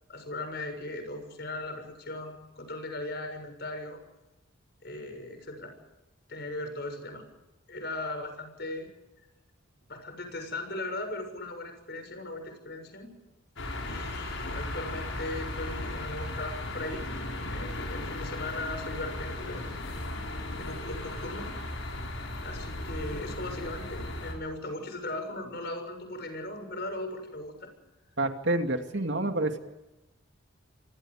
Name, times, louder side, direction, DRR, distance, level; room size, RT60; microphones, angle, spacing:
voice 1, 0.1-4.0 4.8-5.7 6.3-7.2 7.7-8.9 9.9-13.1 13.8-17.1 17.5-20.0 20.6-21.5 22.4-27.7, left 2 dB, 55° left, 6 dB, 6.8 m, -38 dB
sound 1, 13.6-24.3, left 2 dB, 70° left, 6.8 m, -36 dB
voice 2, 28.2-29.6, right 2 dB, 60° right, 5 dB, 2.5 m, -28 dB
29.0 x 25.5 x 5.1 m, 0.98 s
head